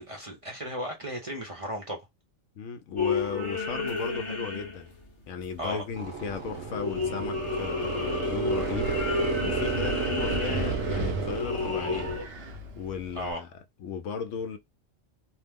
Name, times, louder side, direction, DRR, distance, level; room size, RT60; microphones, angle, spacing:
voice 1, 0.0-2.0 5.6-5.8 8.0-8.3 11.9-12.0 13.1-13.4, equal, 35° right, 0.6 m, -35 dB
voice 2, 2.6-4.9 5.3-9.0 9.4-12.2 12.8-13.5 13.8-14.6, left 6 dB, 75° left, 0.9 m, -35 dB
sound 1, 3.0-5.1 5.4-6.1 6.5-12.2, left 4 dB, 30° left, 0.8 m, -32 dB
sound 2, 6.0-12.2, right 4 dB, 75° right, 1.2 m, -32 dB
Wind, 8.0-13.3, right 2 dB, 60° right, 0.9 m, -36 dB
2.9 x 2.0 x 3.4 m
omnidirectional pair, 1.3 m